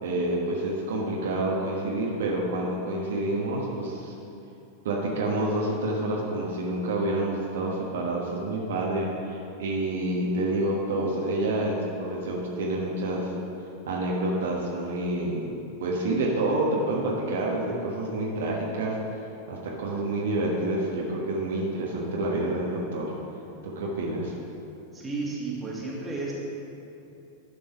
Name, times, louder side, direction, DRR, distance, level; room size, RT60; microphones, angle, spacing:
voice 1, 0.0-4.2 4.8-13.3 13.9-19.0 19.5-23.1 23.6-24.3, right 1 dB, 60° right, -3 dB, 1.3 m, -28 dB
voice 2, 24.9-26.3, right 3 dB, 15° right, -5 dB, 2.2 m, -32 dB
11.0 x 5.4 x 5.4 m, 2.8 s
figure-of-eight pair, 90°, 0 cm